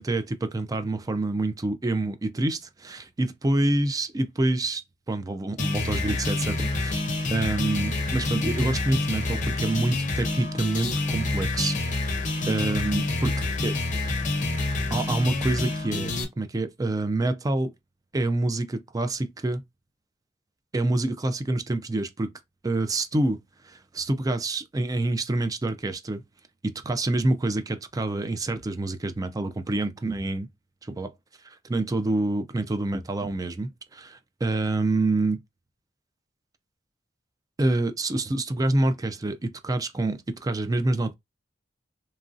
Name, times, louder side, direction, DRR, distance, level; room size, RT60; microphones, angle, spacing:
voice 1, 0.0-4.8 5.1-11.8 12.0-13.3 13.6-13.8 14.9-17.7 18.1-19.6 20.7-22.3 22.6-26.2 26.6-30.5 30.8-31.1 31.4-35.4 37.6-41.1, right 2 dB, 20° right, 0.4 m, -27 dB
sound 1, 5.6-16.2, left 2 dB, 40° left, 0.6 m, -27 dB
3.0 x 2.5 x 2.4 m
head